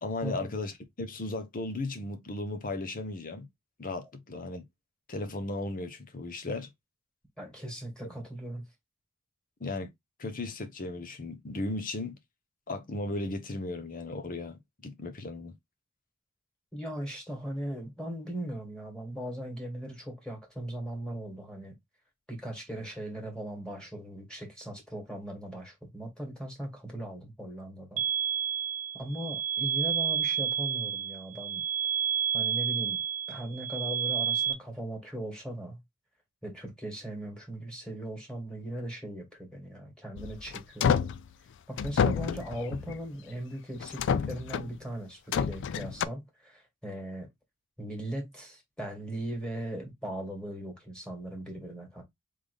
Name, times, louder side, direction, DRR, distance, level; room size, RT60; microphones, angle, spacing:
voice 1, 0.0-3.5 3.8-4.6 5.1-6.7 9.6-9.9 10.2-12.2 12.7-15.6, left 2 dB, 40° left, 0.9 m, -36 dB
voice 2, 7.4-8.6 16.7-21.7 22.3-28.0 28.9-31.6 32.3-33.0 33.3-35.8 36.4-41.1 41.7-47.3 47.8-52.0, right 1 dB, 5° left, 2.2 m, -38 dB
sound 1, 28.0-34.5, right 8 dB, 40° right, 0.5 m, -30 dB
sound 2, 40.2-41.2 41.8-43.1 43.8-44.8 45.3-46.0, left 7 dB, 60° left, 0.3 m, -29 dB
3.7 x 3.6 x 3.4 m
head